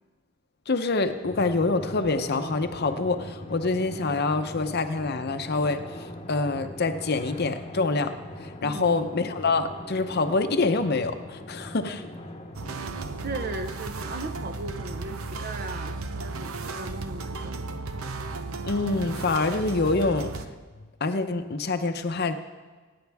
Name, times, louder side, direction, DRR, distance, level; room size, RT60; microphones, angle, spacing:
voice 1, 0.7-8.1 8.4-12.0 18.6-20.3 21.0-22.3, left 3 dB, 50° left, 8 dB, 0.8 m, -26 dB
Drum, 1.2-14.3, left 1 dB, 30° left, 1.0 m, -41 dB
sound 1, 1.2-20.6, equal, 25° right, 1.3 m, -50 dB
voice 2, 8.6-8.9 13.2-17.8, right 2 dB, 45° right, 8 dB, 0.8 m, -37 dB
sound 2, 12.5-20.5, right 3 dB, 85° right, 0.8 m, -35 dB
24.0 x 9.6 x 3.5 m, 1.4 s
head